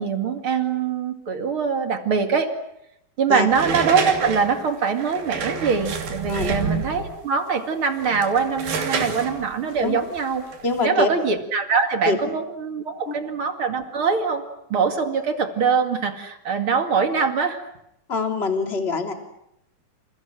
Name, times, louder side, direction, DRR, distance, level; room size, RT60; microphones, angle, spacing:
voice 1, 0.0-2.5 3.2-10.4 10.8-14.4 14.7-17.6, right 5 dB, 40° right, 6 dB, 2.6 m, -23 dB
sound 1, 3.5-7.2 7.9-10.8, right 5 dB, 75° right, 4.6 m, -28 dB
voice 2, 10.6-11.1 12.0-12.2 13.1-13.2 18.1-19.1, left 4 dB, 15° left, 3 dB, 3.1 m, -24 dB
29.5 x 29.5 x 6.3 m, 0.78 s
omnidirectional pair, 4.2 m